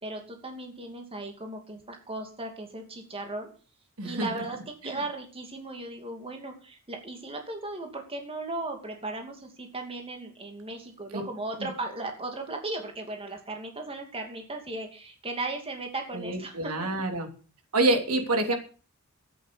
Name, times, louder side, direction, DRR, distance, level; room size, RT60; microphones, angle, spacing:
voice 1, 0.0-3.5 4.0-16.9, right 2 dB, 25° right, 3 dB, 2.6 m, -37 dB
voice 2, 4.0-4.4 11.1-11.2 11.6-11.7 16.1-17.3 17.7-18.5, right 2 dB, 75° right, 4 dB, 3.3 m, -27 dB
13.5 x 9.4 x 7.0 m, 0.37 s
head